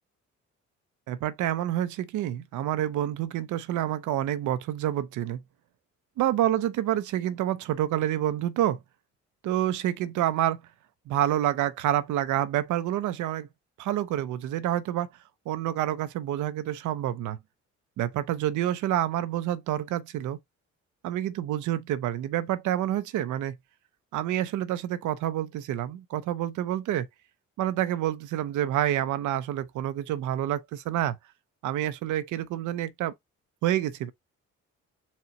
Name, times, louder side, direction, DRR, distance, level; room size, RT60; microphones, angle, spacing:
voice 1, 1.1-5.4 6.2-8.8 9.4-10.6 11.1-13.5 13.8-15.1 15.5-17.4 18.0-20.4 21.0-23.6 24.1-27.1 27.6-31.2 31.6-33.1 33.6-34.1, right 12 dB, 80° right, 0.6 m, -28 dB
4.3 x 2.1 x 3.8 m
cardioid pair, 90°, 30 cm